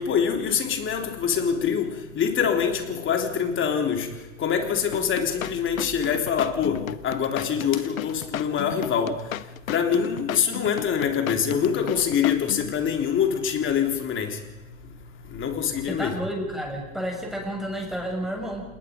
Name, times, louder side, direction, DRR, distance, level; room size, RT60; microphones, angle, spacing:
voice 1, 0.0-1.9 2.2-4.1 4.4-9.2 9.7-14.4 15.3-16.2, left 7 dB, 30° left, 3.6 m, -24 dB
sound 1, 4.9-12.7, left 11 dB, 75° left, 1.0 m, -34 dB
voice 2, 15.9-18.8, equal, ahead, 7.0 m, -31 dB
28.5 x 20.0 x 5.3 m
hypercardioid pair, 100°, 41 cm